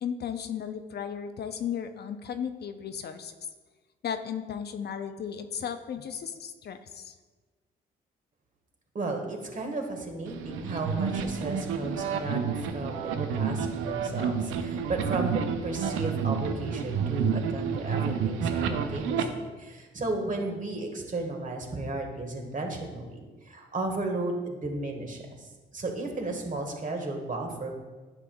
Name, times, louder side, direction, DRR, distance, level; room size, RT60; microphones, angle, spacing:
voice 1, 0.0-3.3 4.0-7.2, left 8 dB, 55° left, 8 dB, 0.6 m, -35 dB
voice 2, 8.9-27.7, right 2 dB, 40° right, 2 dB, 1.6 m, -34 dB
sound 1, 10.3-19.2, right 6 dB, 80° right, 0.6 m, -30 dB
9.6 x 5.8 x 2.3 m, 1.3 s
supercardioid pair, 55°, 20 cm